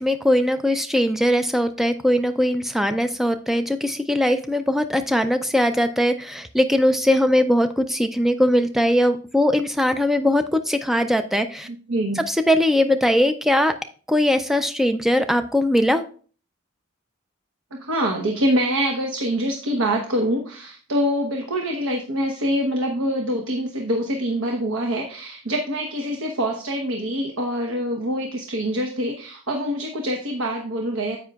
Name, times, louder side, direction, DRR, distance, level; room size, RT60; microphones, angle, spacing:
voice 1, 0.0-11.7 12.3-13.7 14.1-16.0, left 1 dB, ahead, 9 dB, 0.4 m, -20 dB
voice 2, 11.7-12.2 17.7-31.2, equal, 80° right, 2 dB, 1.0 m, -25 dB
9.5 x 8.3 x 2.3 m, 0.42 s
head